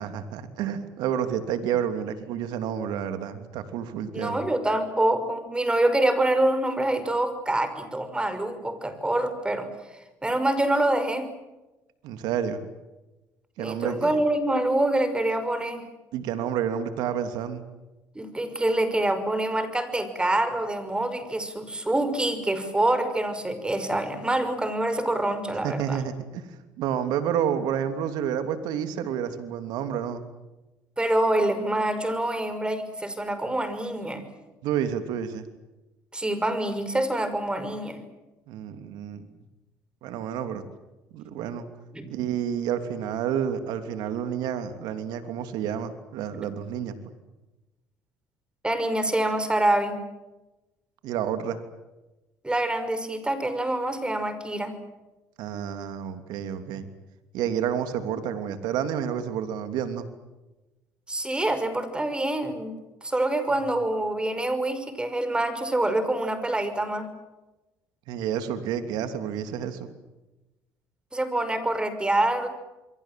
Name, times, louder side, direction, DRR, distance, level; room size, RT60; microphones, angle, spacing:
voice 1, 0.0-4.4 12.0-12.6 13.6-14.1 16.1-17.6 25.6-30.2 34.6-35.5 38.5-39.3 40.0-40.6 41.1-41.7 42.1-47.0 51.0-51.6 55.4-56.9 57.3-60.1 68.1-69.9, right 9 dB, 80° right, 9 dB, 3.0 m, -29 dB
voice 2, 4.1-9.7 10.2-11.3 13.6-15.8 18.1-26.0 31.0-34.2 36.1-38.0 41.9-42.1 48.6-50.0 52.4-54.8 61.1-62.7 63.0-67.1 71.1-72.5, right 1 dB, 15° right, 11 dB, 5.8 m, -26 dB
28.0 x 23.5 x 7.7 m, 1.0 s
supercardioid pair, 85°, 7 cm